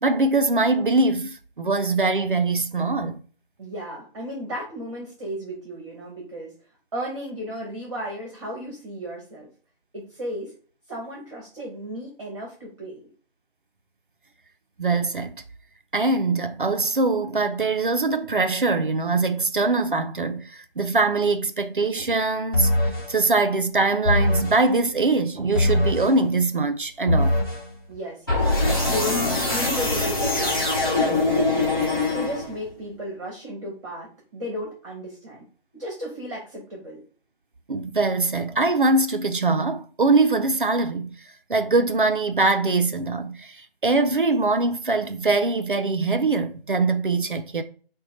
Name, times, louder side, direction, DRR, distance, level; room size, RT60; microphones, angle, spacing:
voice 1, 0.0-3.2 14.8-15.4 15.9-22.7 23.1-27.4 37.7-41.2 41.5-47.6, right 3 dB, 55° right, 0.5 m, -22 dB
voice 2, 3.6-6.5 6.9-9.5 9.9-10.5 10.9-13.0 27.9-28.5 28.8-31.7 32.1-35.4 35.7-37.0, equal, 30° right, 1.3 m, -34 dB
sound 1, 22.5-23.1 24.0-24.6 25.5-26.1 27.1-27.6 28.3-32.7, left 2 dB, 25° left, 1.2 m, -22 dB
5.4 x 2.2 x 4.1 m
figure-of-eight pair, 165°, 31 cm